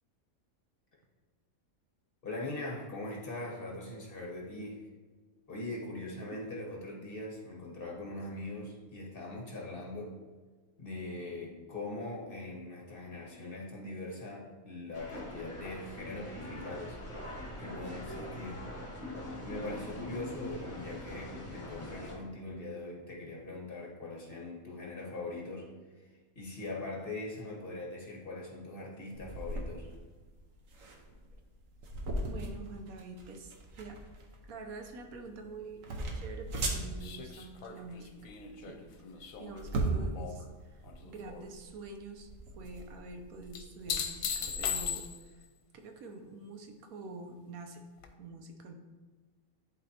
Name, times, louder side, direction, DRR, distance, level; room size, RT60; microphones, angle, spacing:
voice 1, 2.2-4.8 5.5-10.1 10.8-17.0 17.6-18.6 19.4-25.7 26.3-29.9, left 2 dB, 40° left, -2 dB, 1.3 m, -41 dB
sound 1, 14.9-22.2, left 1 dB, 20° left, 1.4 m, -43 dB
sound 2, 29.1-44.9, right 2 dB, 65° right, 1.3 m, -39 dB
voice 2, 32.3-34.0 34.4-38.3 38.6-38.8 39.2-42.3 42.6-45.5 45.8-47.8 48.2-48.7, right 3 dB, 85° right, 5 dB, 1.2 m, -46 dB
sound 3, 37.0-40.5 40.8-41.4 43.5-45.4 48.0-48.1, left 7 dB, 75° left, 1.1 m, -38 dB
11.0 x 4.0 x 2.8 m, 1.4 s
omnidirectional pair, 1.5 m